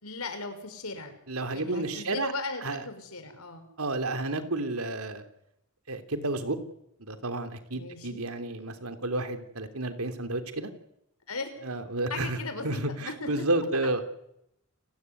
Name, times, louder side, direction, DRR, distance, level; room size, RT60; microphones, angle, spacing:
voice 1, 0.0-1.2 1.5-3.7 7.7-8.2 11.3-11.5 12.1-13.4, left 3 dB, 85° left, 8 dB, 5.8 m, -37 dB
voice 2, 1.3-2.3 2.6-2.8 3.8-5.2 5.9-6.6 7.0-10.7 11.6-12.4 12.6-14.0, right 2 dB, 80° right, 8 dB, 3.3 m, -31 dB
29.5 x 19.0 x 9.8 m, 0.81 s
head